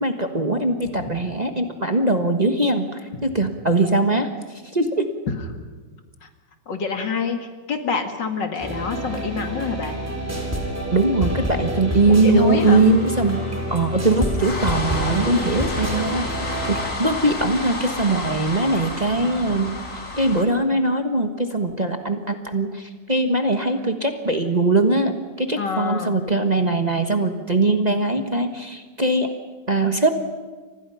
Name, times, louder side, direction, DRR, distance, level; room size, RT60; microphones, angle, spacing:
voice 1, 0.0-4.3 4.7-5.1 10.9-13.4 13.7-16.3 16.6-19.7 20.2-29.3 29.7-30.1, right 2 dB, 25° right, 5 dB, 1.3 m, -21 dB
voice 2, 6.7-7.4 7.7-10.0 12.1-12.8 25.6-26.2, left 5 dB, 75° left, 6 dB, 2.7 m, -26 dB
sound 1, 8.6-16.8, equal, 10° right, 4.0 m, -28 dB
sound 2, 12.5-20.4, left 2 dB, 45° left, 3.5 m, -31 dB
30.0 x 25.0 x 5.8 m, 1.4 s
omnidirectional pair, 1.9 m